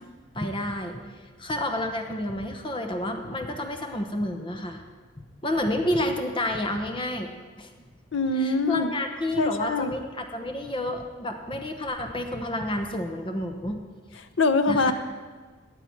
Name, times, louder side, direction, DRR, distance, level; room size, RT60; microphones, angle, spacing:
voice 1, 0.3-1.0 1.4-4.8 5.2-7.3 7.6-7.7 8.4-13.8 14.7-14.9, left 1 dB, 25° left, 5 dB, 1.0 m, -30 dB
voice 2, 8.1-8.9 9.4-9.9 14.4-14.9, left 3 dB, 80° left, 9 dB, 0.8 m, -23 dB
15.5 x 9.8 x 4.6 m, 1.4 s
head